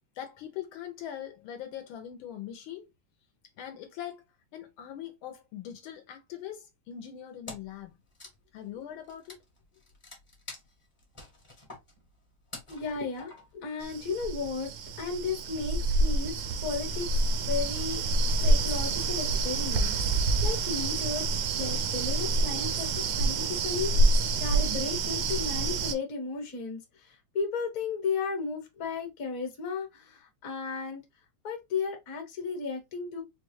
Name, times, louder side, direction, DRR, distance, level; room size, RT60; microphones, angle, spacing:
voice 1, 0.1-2.9 3.6-4.2 4.5-7.9 8.5-9.4, left 10 dB, 75° left, 1.4 m, -41 dB
Wood, 7.5-7.8 8.1-13.7, left 2 dB, 25° left, 0.7 m, -47 dB
voice 2, 12.7-14.7 15.0-17.2 17.5-18.0 18.4-31.0 31.4-33.2, left 5 dB, 50° left, 1.3 m, -34 dB
sound 1, 13.8-26.0, right 2 dB, 75° right, 1.2 m, -27 dB
4.7 x 2.2 x 3.0 m
omnidirectional pair, 2.3 m